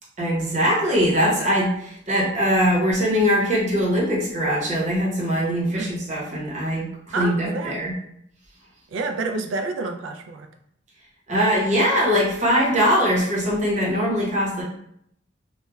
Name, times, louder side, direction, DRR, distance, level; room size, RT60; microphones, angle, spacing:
voice 1, 0.2-6.9 7.2-7.9 11.3-14.6, equal, 40° right, -5 dB, 0.8 m, -21 dB
voice 2, 7.1-7.8 8.9-10.5, right 3 dB, 90° right, 5 dB, 0.3 m, -29 dB
3.0 x 2.2 x 2.2 m, 0.73 s
head